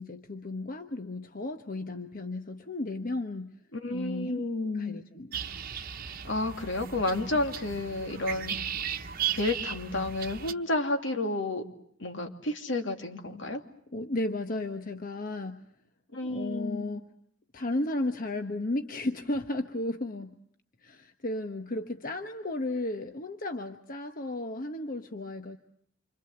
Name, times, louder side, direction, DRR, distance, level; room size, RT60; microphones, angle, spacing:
voice 1, 0.0-3.6 3.9-5.4 13.9-15.7 16.2-17.1 17.5-20.4 20.8-25.6, left 2 dB, 45° left, 7 dB, 1.2 m, -34 dB
voice 2, 3.7-5.0 6.3-8.7 9.3-11.6 12.0-13.6 16.1-16.9, left 2 dB, 75° left, 5 dB, 2.7 m, -31 dB
sound 1, 5.3-10.5, right 9 dB, 50° right, 1.1 m, -36 dB
28.0 x 25.5 x 7.9 m, 0.65 s
head